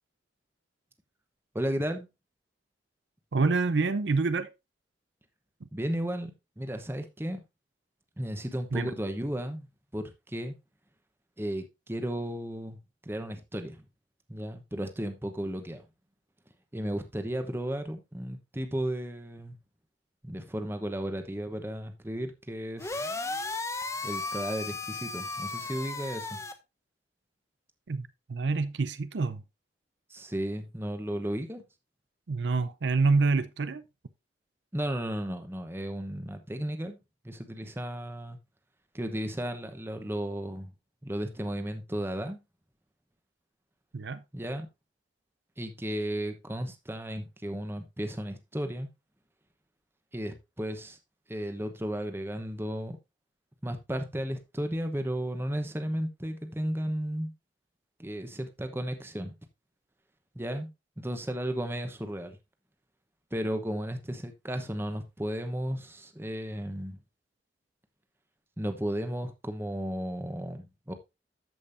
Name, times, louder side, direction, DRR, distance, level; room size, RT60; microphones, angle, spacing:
voice 1, 1.5-2.1 5.7-7.4 8.2-9.7 9.9-10.6 11.4-12.8 13.0-13.8 14.3-15.9 16.7-19.6 20.2-23.1 24.0-26.4 30.1-31.6 34.7-37.0 37.2-38.4 38.9-40.7 41.0-42.4 44.3-44.7 45.6-48.9 50.1-51.0 51.3-53.0 53.6-57.3 58.0-59.3 60.3-60.7 61.0-62.4 63.3-67.0 68.6-70.9, equal, 15° right, 1.0 m, -34 dB
voice 2, 3.3-4.5 5.6-5.7 8.7-8.9 27.9-29.4 32.3-33.8 43.9-44.2, right 3 dB, 80° right, 0.6 m, -27 dB
sound 1, 22.8-26.5, left 3 dB, 15° left, 0.8 m, -35 dB
13.5 x 5.4 x 2.6 m
head